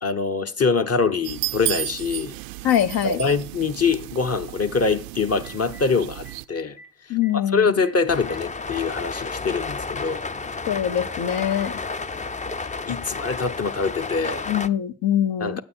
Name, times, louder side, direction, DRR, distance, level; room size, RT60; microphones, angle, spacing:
voice 1, 0.0-2.3 3.0-6.8 7.1-10.2 12.9-14.4 15.4-15.6, left 4 dB, 35° left, 1.0 m, -24 dB
sound 1, 1.2-6.4, right 18 dB, 80° right, 0.5 m, -33 dB
voice 2, 2.6-3.2 7.1-7.8 10.7-11.8 14.5-15.6, left 10 dB, 65° left, 0.8 m, -23 dB
Telephone, 5.4-5.8 6.2-6.4 6.8-6.9 7.1-7.3 7.8-7.9 8.3-8.4 8.7-9.3 10.3-10.4 11.8-11.9, equal, 80° left, 3.3 m, -46 dB
sound 2, 8.1-14.7, left 3 dB, 20° left, 0.5 m, -31 dB
8.9 x 8.6 x 4.4 m
hypercardioid pair, 45°, 41 cm